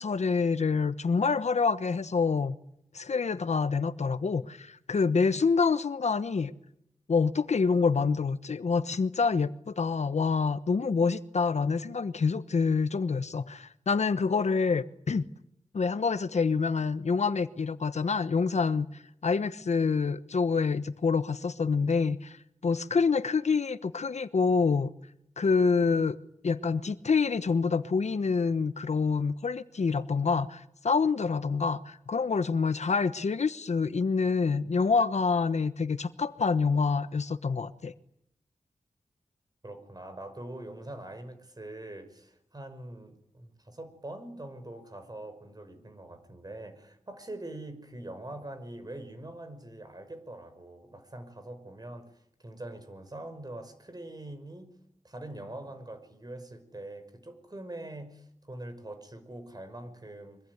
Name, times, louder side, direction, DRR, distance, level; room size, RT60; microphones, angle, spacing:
voice 1, 0.0-2.6 2.9-6.5 7.1-15.2 15.7-24.9 25.4-26.2 26.4-37.9, left 5 dB, 65° left, 1.1 m, -27 dB
voice 2, 39.6-54.7 55.0-60.4, right 1 dB, 35° right, 5.7 m, -43 dB
24.5 x 22.5 x 9.7 m
cardioid pair, 55°, 12 cm